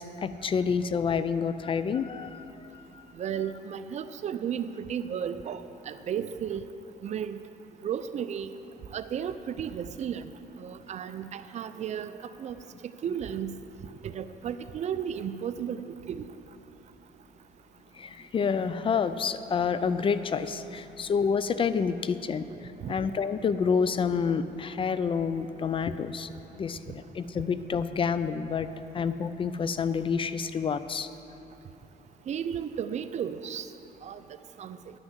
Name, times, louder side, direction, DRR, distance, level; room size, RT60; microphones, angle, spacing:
voice 1, 0.0-2.4 2.7-3.0 17.9-26.3 26.6-28.7 28.9-31.1, left 6 dB, 30° left, 13 dB, 0.4 m, -28 dB
voice 2, 3.2-6.6 7.0-7.4 7.8-8.5 8.9-10.3 10.6-12.6 13.0-13.5 14.0-16.3 22.8-22.9 32.3-33.7 34.0-34.2 34.6-34.8, right 8 dB, 45° right, 12 dB, 0.4 m, -34 dB
11.0 x 6.2 x 7.3 m, 3.0 s
cardioid pair, 110°, 17 cm